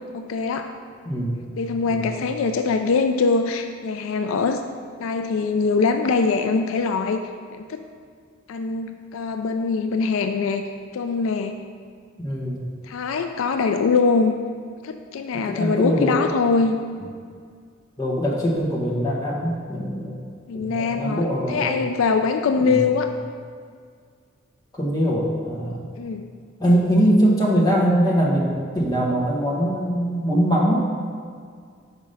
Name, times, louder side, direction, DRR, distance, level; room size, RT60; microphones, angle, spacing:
voice 1, 0.1-0.7 1.6-4.6 5.0-7.2 7.5-7.8 8.5-10.6 10.9-11.5 12.9-14.3 14.8-16.8 20.5-23.1 26.0-26.3, left 4 dB, 75° left, 7 dB, 0.3 m, -23 dB
voice 2, 1.0-1.5 1.9-2.2 12.2-12.7 15.5-16.2 18.0-20.3 20.5-21.8 22.6-22.8 24.7-25.8 26.6-30.8, equal, 20° left, -4 dB, 1.1 m, -22 dB
5.2 x 4.8 x 5.5 m, 2.1 s
head